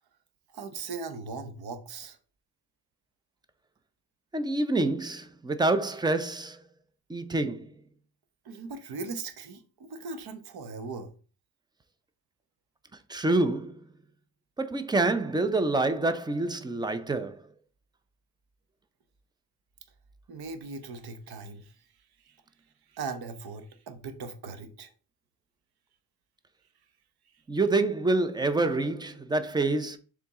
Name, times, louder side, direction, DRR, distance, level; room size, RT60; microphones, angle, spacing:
voice 1, 0.5-2.2 8.4-11.1 20.3-21.7 22.2-22.4 22.9-24.9, right 4 dB, 65° right, 1.0 m, -39 dB
voice 2, 4.3-6.6 7.1-7.7 13.1-13.9 14.6-17.4 27.5-30.0, right 2 dB, 10° right, 0.4 m, -27 dB
7.0 x 3.7 x 3.6 m
wide cardioid pair, 155°, 41 cm